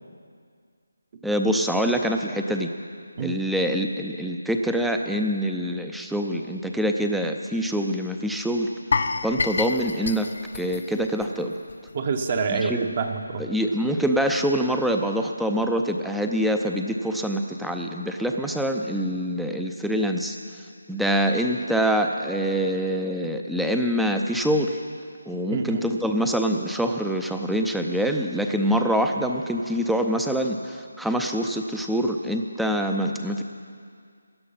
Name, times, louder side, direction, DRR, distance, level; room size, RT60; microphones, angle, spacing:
voice 1, 1.2-2.7 3.2-8.7 9.2-10.3 10.5-11.5 12.5-12.9 13.4-20.4 20.9-24.8 25.3-33.4, equal, ahead, 3 dB, 0.6 m, -25 dB
sound 1, 8.9-11.9 12.2-12.4 12.8-12.9, left 4 dB, 55° left, 0.7 m, -29 dB
voice 2, 11.9-13.5 25.5-25.8, right 5 dB, 35° right, 5 dB, 1.0 m, -27 dB
17.0 x 11.0 x 5.7 m, 2.1 s
figure-of-eight pair, 160°, 0 cm